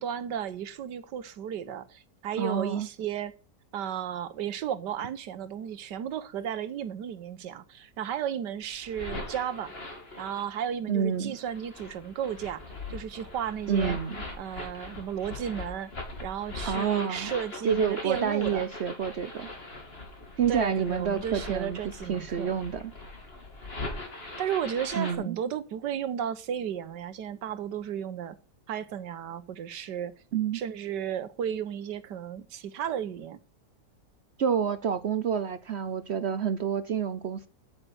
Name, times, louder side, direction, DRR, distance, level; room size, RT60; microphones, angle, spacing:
voice 1, 0.0-3.3 3.7-9.7 10.2-12.6 12.9-14.0 14.4-15.9 16.2-18.7 20.5-22.5 24.4-28.4 28.7-30.1 30.5-33.4, right 9 dB, 80° right, 1.6 m, -34 dB
voice 2, 2.4-2.9 10.9-11.3 13.7-14.2 16.6-17.3 17.6-19.5 20.4-21.8 22.1-22.9 24.9-25.4 30.3-30.6 34.4-37.5, right 7 dB, 60° right, 0.7 m, -28 dB
sound 1, 8.6-10.6 11.4-25.1, left 2 dB, 35° left, 2.7 m, -41 dB
9.0 x 7.8 x 7.9 m
omnidirectional pair, 1.8 m